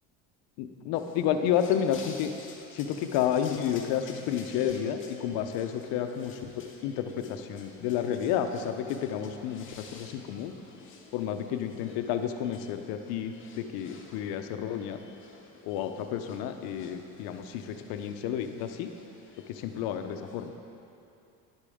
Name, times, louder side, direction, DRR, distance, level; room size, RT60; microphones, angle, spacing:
voice 1, 0.6-2.3 2.7-10.5 11.1-15.0 15.6-18.9 19.5-20.5, left 9 dB, 80° left, 7 dB, 0.7 m, -31 dB
sound 1, 0.9-20.5, left 4 dB, 35° left, 0.9 m, -52 dB
10.5 x 8.4 x 3.6 m, 2.8 s
cardioid pair, 140°, 36 cm